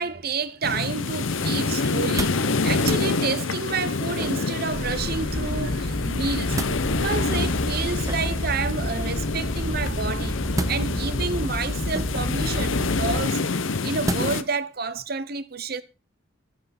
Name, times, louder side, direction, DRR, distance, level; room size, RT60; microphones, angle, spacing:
voice 1, 0.0-6.6 7.0-10.4 10.7-13.5 13.8-15.8, right 4 dB, 50° right, 0.9 m, -29 dB
sound 1, 0.6-14.4, left 3 dB, 75° left, 0.8 m, -27 dB
sound 2, 2.0-2.5 2.8-3.1 4.2-4.6 6.1-6.8 8.0-8.5 10.5-11.2 11.9-12.4 14.0-14.5 15.0-15.1, right 2 dB, 15° right, 0.7 m, -32 dB
sound 3, 4.7-13.2, left 1 dB, 30° left, 1.3 m, -30 dB
15.0 x 5.7 x 5.9 m
head